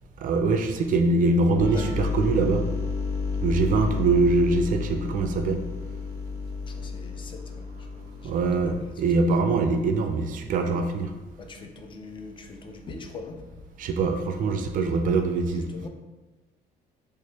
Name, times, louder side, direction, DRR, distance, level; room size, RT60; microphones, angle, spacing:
voice 1, 0.2-2.6 3.4-5.6 8.2-11.1 13.8-15.7, right 3 dB, 55° right, 6 dB, 0.4 m, -23 dB
voice 2, 1.0-2.2 6.6-9.0 11.4-13.8 15.7-15.9, left 3 dB, 30° left, 5 dB, 0.5 m, -42 dB
sound 1, 1.6-9.1, left 4 dB, 15° right, 0.7 m, -31 dB
3.3 x 2.8 x 3.2 m, 1.2 s
cardioid pair, 110°, 17 cm